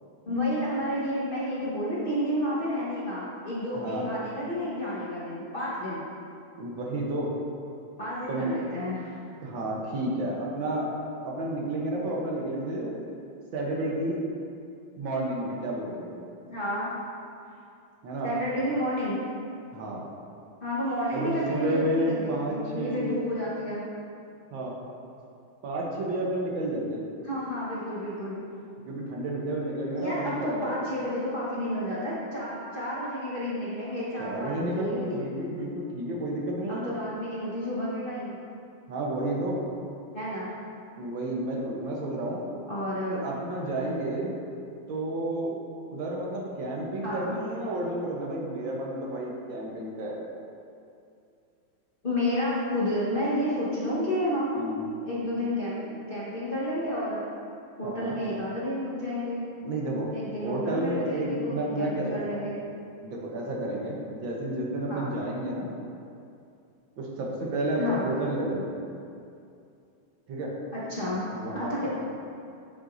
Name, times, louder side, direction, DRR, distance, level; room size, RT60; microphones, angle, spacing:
voice 1, 0.2-6.0 8.0-9.2 16.5-16.9 18.2-19.2 20.6-23.8 27.2-28.5 30.0-35.2 36.7-38.4 40.1-40.5 42.7-43.2 47.0-47.3 52.0-54.7 55.0-57.3 57.8-59.5 60.1-62.6 64.9-65.2 67.8-68.1 70.7-71.3 71.5-71.9, equal, 30° left, -9 dB, 1.2 m, -31 dB
voice 2, 3.7-4.1 6.6-7.3 8.3-8.5 9.4-10.9 11.2-12.9 13.5-14.2 15.0-16.2 18.0-18.3 19.7-20.1 21.1-23.0 24.5-24.7 25.6-27.0 28.8-30.7 34.2-36.9 38.9-39.6 41.0-42.4 43.1-44.3 44.9-45.5 45.9-50.2 54.6-54.8 57.8-58.1 59.6-60.1 60.4-62.5 63.0-65.7 67.0-68.8 70.3-70.5 71.0-71.9, right 1 dB, 70° right, -2 dB, 1.7 m, -31 dB
8.0 x 7.7 x 2.6 m, 2.5 s
omnidirectional pair, 2.2 m